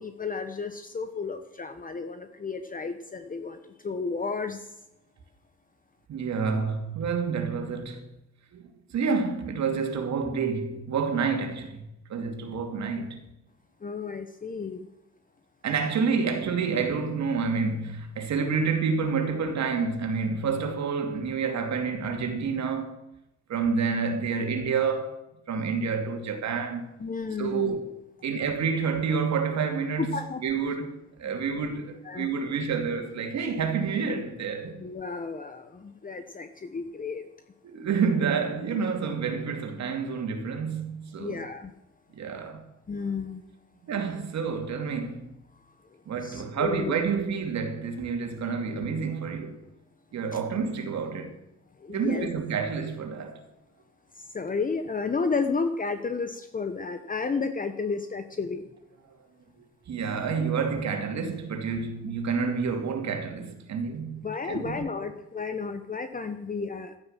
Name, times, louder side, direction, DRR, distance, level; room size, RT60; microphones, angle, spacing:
voice 1, 0.0-4.8 13.8-14.9 27.0-27.8 30.0-30.4 30.7-30.8 31.2-31.4 32.0-32.3 34.8-37.2 41.2-41.7 42.9-43.4 45.6-46.9 51.8-52.3 54.1-58.7 64.2-67.0, left 4 dB, 25° left, 1.1 m, -32 dB
voice 2, 6.1-8.1 8.5-13.2 15.6-23.0 23.5-25.2 25.5-26.9 27.4-27.8 28.2-30.9 31.2-34.8 37.6-41.4 42.1-42.6 43.8-45.3 46.1-49.6 50.1-51.3 51.9-53.4 59.1-59.2 59.9-64.9, right 5 dB, 65° right, 2.7 m, -29 dB
13.0 x 10.5 x 7.4 m
cardioid pair, 90°, 30 cm